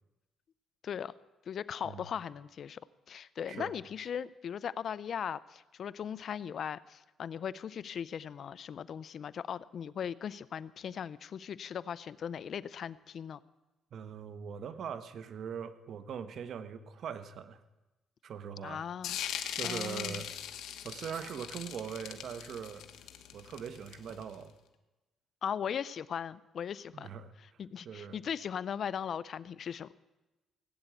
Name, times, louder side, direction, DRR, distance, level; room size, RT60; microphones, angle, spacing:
voice 1, 1.5-13.4 18.6-19.2 19.6-20.2 25.4-27.1 27.4-29.9, left 8 dB, 60° left, 18 dB, 0.5 m, -38 dB
voice 2, 13.9-17.6 18.2-18.9 19.5-20.3 20.8-22.8 23.3-24.5 26.9-27.3 27.8-28.2, right 7 dB, 65° right, 11 dB, 1.2 m, -41 dB
sound 1, 19.0-24.3, left 10 dB, 85° left, 1.3 m, -40 dB
17.5 x 9.0 x 8.4 m, 1.1 s
cardioid pair, 90°, 0 cm